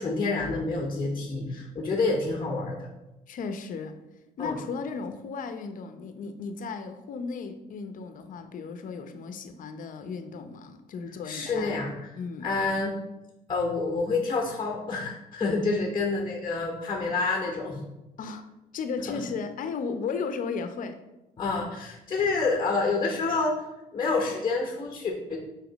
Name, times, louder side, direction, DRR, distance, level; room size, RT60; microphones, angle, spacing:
voice 1, 0.0-2.9 4.4-4.6 11.2-11.9 12.4-12.9 13.5-17.8 19.1-19.2 21.4-23.6 23.9-25.4, left 3 dB, 25° left, 1 dB, 1.0 m, -28 dB
voice 2, 3.3-4.0 4.4-11.8 12.2-12.5 18.2-18.4 18.7-21.0, left 5 dB, 50° left, 8 dB, 0.8 m, -35 dB
5.0 x 4.4 x 5.1 m, 0.95 s
cardioid pair, 110°, 17 cm